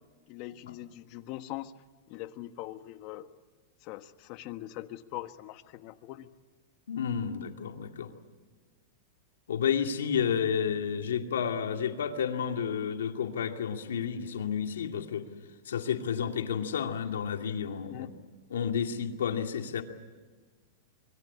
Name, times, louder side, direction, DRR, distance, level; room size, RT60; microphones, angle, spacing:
voice 1, 0.3-1.7 2.1-3.3 3.8-6.3 17.9-18.1, left 15 dB, 45° left, 10 dB, 1.4 m, -42 dB
voice 2, 6.9-8.1 9.5-15.3 15.6-18.1 18.5-19.8, left 7 dB, 90° left, 5 dB, 2.4 m, -31 dB
25.0 x 22.0 x 8.6 m, 1.4 s
hypercardioid pair, 130°, 0 cm